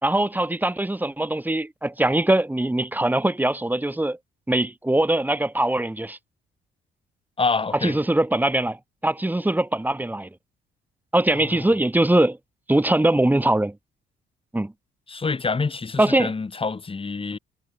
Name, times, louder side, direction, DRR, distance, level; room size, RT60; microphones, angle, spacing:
voice 1, 0.0-4.2 4.5-6.2 7.8-8.8 9.0-10.3 11.1-12.4 12.7-13.7 14.5-14.7 16.0-16.3, right 1 dB, 10° right, 1.7 m, -22 dB
voice 2, 7.4-8.0 11.3-11.7 15.1-17.4, left 4 dB, 25° left, 2.6 m, -27 dB
cardioid pair, 90°, 20 cm